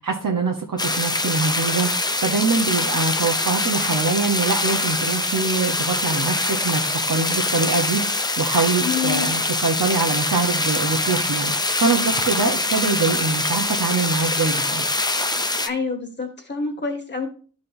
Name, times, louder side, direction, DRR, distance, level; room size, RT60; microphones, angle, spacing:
voice 1, 0.0-11.5 11.8-14.9, right 4 dB, 80° right, 0 dB, 0.9 m, -24 dB
sound 1, 0.8-15.7, left 2 dB, 15° left, 0.4 m, -24 dB
voice 2, 8.8-9.3 15.6-17.3, left 5 dB, 35° left, 1 dB, 1.7 m, -27 dB
12.5 x 4.2 x 2.6 m, 0.40 s
wide cardioid pair, 80°, 32 cm